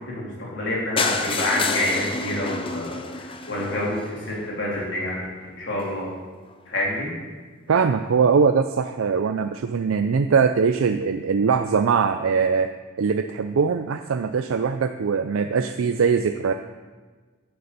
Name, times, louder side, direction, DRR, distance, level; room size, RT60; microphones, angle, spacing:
voice 1, 0.0-5.2 5.5-6.1 6.7-7.1, left 1 dB, 60° left, -4 dB, 3.2 m, -27 dB
sound 1, 1.0-4.9 5.5-5.6 5.8-5.9 6.2-6.3 6.5-6.6, left 4 dB, 25° left, 0.6 m, -29 dB
voice 2, 7.7-12.7 13.0-16.5, right 5 dB, 80° right, 7 dB, 0.4 m, -21 dB
9.5 x 6.8 x 6.7 m, 1.4 s
head